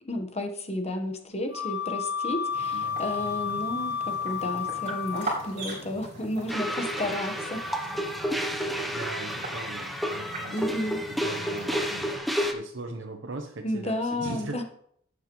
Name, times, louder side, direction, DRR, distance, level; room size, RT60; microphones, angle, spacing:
voice 1, 0.0-7.9 10.5-11.0 13.6-14.6, left 1 dB, 35° left, 5 dB, 1.1 m, -32 dB
Wind instrument woodwind instrument, 1.5-5.5, left 7 dB, 85° left, 4.7 m, -31 dB
sound 1, 2.5-12.2, right 2 dB, 40° right, 4.8 m, -40 dB
voice 2, 2.7-3.6 8.9-10.6 11.1-14.6, right 2 dB, 70° right, 4 dB, 0.8 m, -40 dB
sound 2, 6.5-12.5, equal, ahead, 0.8 m, -30 dB
12.5 x 8.3 x 3.1 m, 0.68 s
head